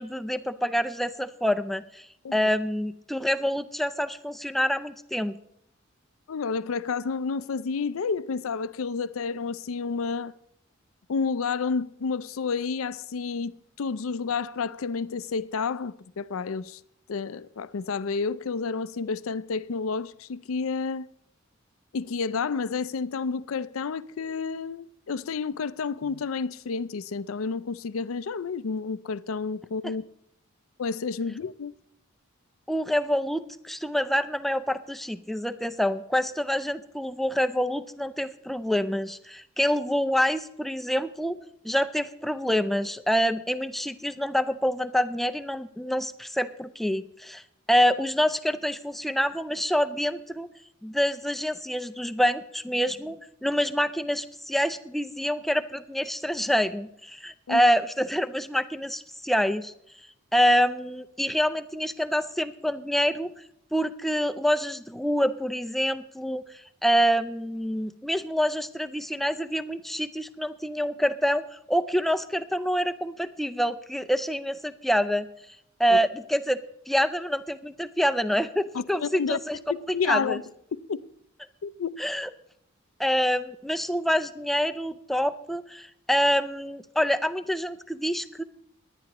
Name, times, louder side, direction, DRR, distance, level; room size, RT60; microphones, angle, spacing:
voice 1, 0.0-2.1 2.3-5.4 29.8-29.9 32.7-41.4 41.6-47.4 47.7-50.5 50.8-59.7 60.3-63.3 63.7-66.4 66.8-75.3 75.8-76.6 76.9-79.6 80.0-80.4 82.0-82.3 83.0-88.4, equal, ahead, 0.4 m, -26 dB
voice 2, 6.3-10.3 11.1-16.8 17.1-21.1 21.9-30.0 30.8-31.7 57.5-57.6 75.9-76.0 78.7-79.4 79.7-80.4 80.9-81.0 81.6-81.9, left 5 dB, 80° left, 0.5 m, -30 dB
18.5 x 11.0 x 3.0 m
head